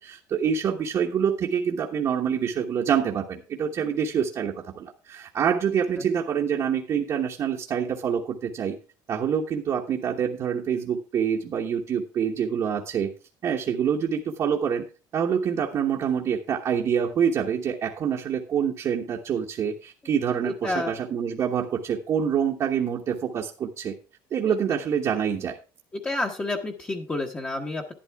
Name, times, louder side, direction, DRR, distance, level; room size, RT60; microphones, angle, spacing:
voice 1, 0.0-8.8 9.1-13.1 13.4-14.8 15.1-24.0 24.3-25.6, right 7 dB, 40° right, 0 dB, 1.2 m, -26 dB
voice 2, 20.4-21.0 24.4-24.5 26.0-27.9, left 2 dB, 15° left, 1 dB, 1.1 m, -30 dB
11.5 x 10.5 x 3.5 m, 0.33 s
cardioid pair, 155°, 9 cm